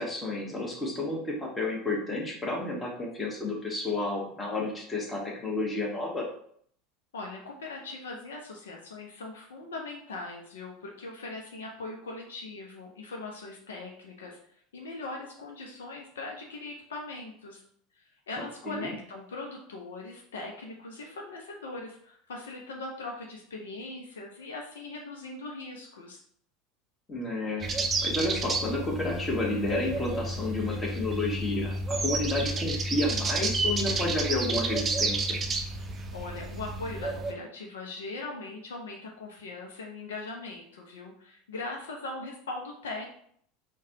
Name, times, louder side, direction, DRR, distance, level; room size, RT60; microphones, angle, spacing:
voice 1, 0.0-6.3 18.4-18.9 27.1-27.7 28.0-35.4, left 2 dB, 20° left, -2 dB, 1.2 m, -31 dB
voice 2, 7.1-14.4 14.7-17.6 18.0-26.2 36.1-43.1, left 3 dB, 75° left, 0 dB, 0.5 m, -40 dB
sound 1, 27.6-37.3, right 2 dB, 30° right, 0.5 m, -31 dB
4.7 x 2.2 x 2.7 m, 0.64 s
figure-of-eight pair, 75°, 0 cm